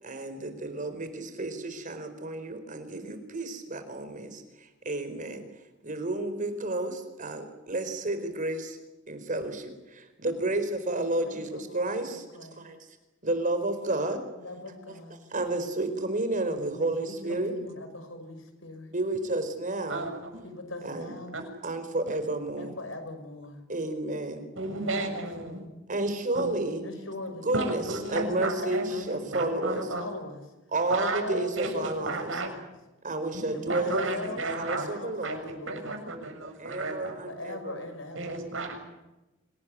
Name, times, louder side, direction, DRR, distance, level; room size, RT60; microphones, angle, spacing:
voice 1, 0.0-8.8 9.1-13.0 13.2-14.2 14.6-14.7 15.1-17.5 18.9-20.1 20.8-21.1 21.6-22.7 23.7-24.4 25.9-26.8 27.4-29.9 30.7-32.4 33.0-35.4 36.4-37.8, right 2 dB, 40° right, 9 dB, 4.5 m, -31 dB
voice 2, 11.2-12.6 14.4-15.2 16.7-18.9 20.4-21.4 22.6-23.6 24.6-25.7 26.8-27.5 28.1-29.4 29.9-30.4 31.0-32.5 33.5-36.0 37.2-38.5, left 2 dB, 80° left, 7 dB, 5.9 m, -41 dB
voice 3, 19.9-20.4 21.3-21.5 24.5-25.6 26.3-26.5 27.5-30.1 30.9-32.5 33.3-34.9 35.2-37.2 38.1-38.8, right 2 dB, 80° right, 4 dB, 6.9 m, -33 dB
26.5 x 19.0 x 9.7 m, 1.0 s
head